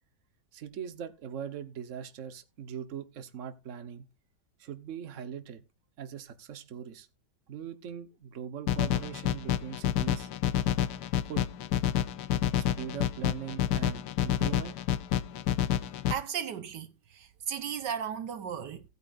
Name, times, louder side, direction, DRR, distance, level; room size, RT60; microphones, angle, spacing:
voice 1, 0.5-4.1 4.6-5.6 6.0-7.1 7.5-10.3 11.2-11.5 12.5-14.8, right 8 dB, 50° right, 1.4 m, -41 dB
sound 1, 8.7-16.1, left 10 dB, 70° left, 1.3 m, -29 dB
voice 2, 16.1-16.9 17.1-18.8, right 8 dB, 75° right, 1.5 m, -35 dB
17.5 x 8.8 x 2.6 m
omnidirectional pair, 1.9 m